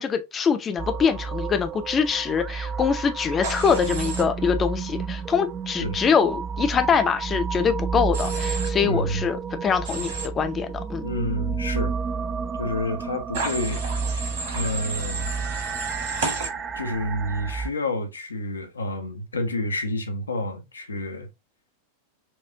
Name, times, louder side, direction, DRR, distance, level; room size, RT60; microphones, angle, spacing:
voice 1, 0.0-11.0, left 6 dB, 25° left, 0.6 m, -24 dB
sound 1, 0.8-17.7, right 5 dB, 25° right, 0.4 m, -31 dB
Human voice / Train, 3.4-4.2 8.1-8.7 9.8-10.3 13.3-16.5, right 3 dB, 60° right, 1.7 m, -31 dB
voice 2, 8.8-9.3 11.0-11.9 12.6-13.8 14.1-14.3 14.5-15.3 16.7-21.3, left 1 dB, 75° left, 0.7 m, -29 dB
4.4 x 2.5 x 2.7 m
figure-of-eight pair, 90°, 0 cm